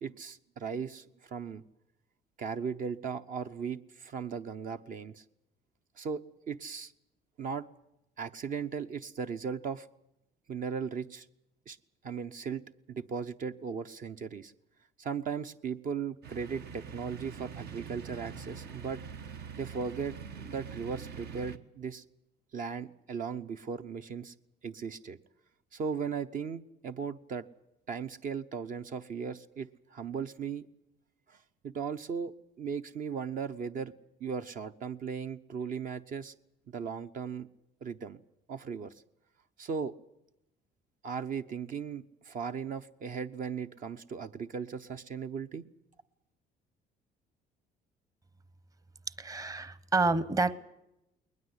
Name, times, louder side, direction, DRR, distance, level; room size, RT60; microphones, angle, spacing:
voice 1, 0.0-1.6 2.4-5.2 6.0-6.9 7.4-7.7 8.2-9.9 10.5-11.3 11.7-11.8 12.0-14.5 15.0-19.0 19.6-22.0 22.5-24.3 24.6-25.2 25.7-27.4 27.9-30.7 31.3-33.9 34.2-36.3 36.7-37.5 37.8-38.2 38.5-38.9 39.6-39.9 41.0-45.6, right 6 dB, 55° right, 8 dB, 0.9 m, -37 dB
sound 1, 16.2-21.6, right 6 dB, 70° right, 1.4 m, -44 dB
voice 2, 49.2-50.5, right 3 dB, 20° right, 15 dB, 1.0 m, -28 dB
20.5 x 20.5 x 8.1 m, 0.87 s
cardioid pair, 110°, 17 cm